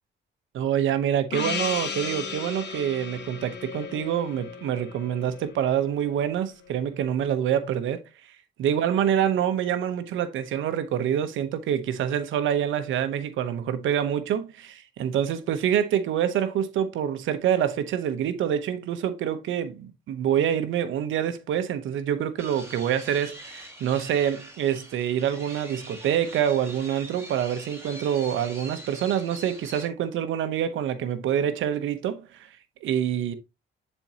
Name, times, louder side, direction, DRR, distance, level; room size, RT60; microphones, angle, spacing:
voice 1, 0.5-33.3, right 9 dB, 80° right, 0.9 m, -26 dB
Gong, 1.3-6.1, left 6 dB, 60° left, 2.3 m, -35 dB
sound 1, 22.4-29.8, right 1 dB, 10° right, 4.6 m, -43 dB
9.9 x 4.5 x 2.8 m
cardioid pair, 90°, 20 cm